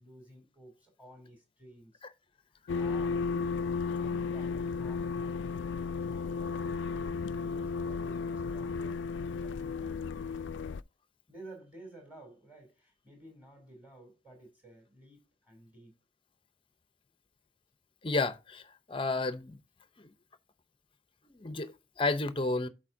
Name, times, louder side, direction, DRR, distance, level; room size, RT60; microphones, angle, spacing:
voice 1, 0.0-2.0 2.5-9.0 9.4-10.8 11.3-15.9, right 1 dB, 10° right, 3.1 m, -54 dB
sound 1, 2.7-10.8, left 5 dB, 70° left, 0.3 m, -34 dB
voice 2, 18.0-19.6 20.0-20.1 21.3-22.7, left 3 dB, 25° left, 0.6 m, -32 dB
12.0 x 4.5 x 2.6 m
head